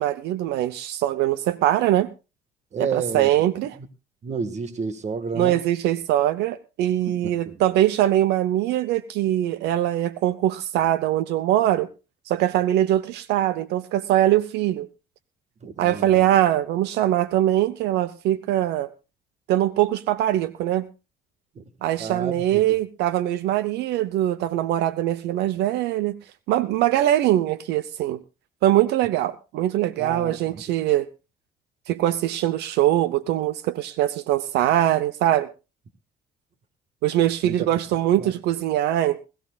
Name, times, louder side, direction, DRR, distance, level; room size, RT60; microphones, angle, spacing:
voice 1, 0.0-2.1 2.8-3.7 5.4-11.9 12.3-14.9 15.8-18.9 19.5-20.9 21.8-26.2 26.5-28.2 28.6-31.1 31.9-35.5 37.0-39.2, right 13 dB, 80° right, 0.8 m, -22 dB
voice 2, 2.7-3.3 4.2-5.6 7.0-7.6 15.6-16.3 21.5-21.6 22.0-22.6 30.0-30.6 37.4-37.7 38.2-38.3, right 5 dB, 45° right, 1.6 m, -31 dB
20.5 x 15.0 x 2.4 m
cardioid pair, 110°, 17 cm